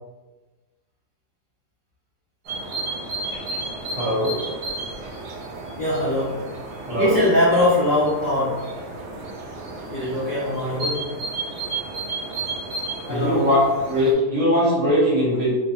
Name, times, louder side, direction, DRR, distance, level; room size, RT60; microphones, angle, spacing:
sound 1, 2.5-14.1, right 2 dB, 75° right, 1.2 m, -32 dB
voice 1, 3.9-4.4 6.9-7.2 13.1-13.6 13.9-15.5, equal, 50° right, -8 dB, 1.4 m, -20 dB
voice 2, 5.8-6.5 7.0-8.7 9.9-11.2 13.1-13.5, left 1 dB, 65° left, -9 dB, 0.4 m, -22 dB
2.9 x 2.2 x 2.7 m, 1.2 s
omnidirectional pair, 1.8 m